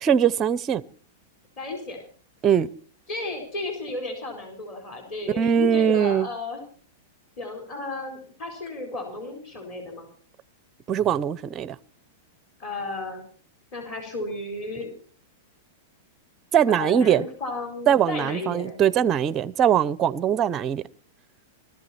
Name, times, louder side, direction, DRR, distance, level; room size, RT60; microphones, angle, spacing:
voice 1, 0.0-0.8 2.4-2.7 5.4-6.3 10.9-11.8 16.5-17.2 17.9-20.8, right 8 dB, 20° right, 0.6 m, -21 dB
voice 2, 1.6-2.0 3.1-6.6 7.4-10.1 12.6-13.2 13.7-14.9 16.7-18.7, left 2 dB, 25° left, 4.3 m, -33 dB
20.5 x 14.0 x 4.3 m
supercardioid pair, 170°, 0 cm